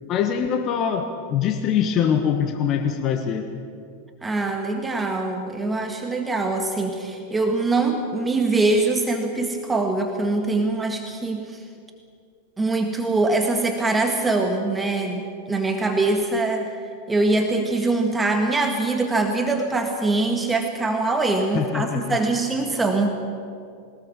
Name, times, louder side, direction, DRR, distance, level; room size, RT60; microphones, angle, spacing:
voice 1, 0.1-3.5 21.5-22.2, left 8 dB, 35° left, 6 dB, 1.3 m, -23 dB
voice 2, 4.2-11.6 12.6-16.8 17.1-23.1, right 3 dB, 10° right, 4 dB, 1.8 m, -23 dB
21.5 x 19.5 x 7.3 m, 2.4 s
figure-of-eight pair, 90°, 0 cm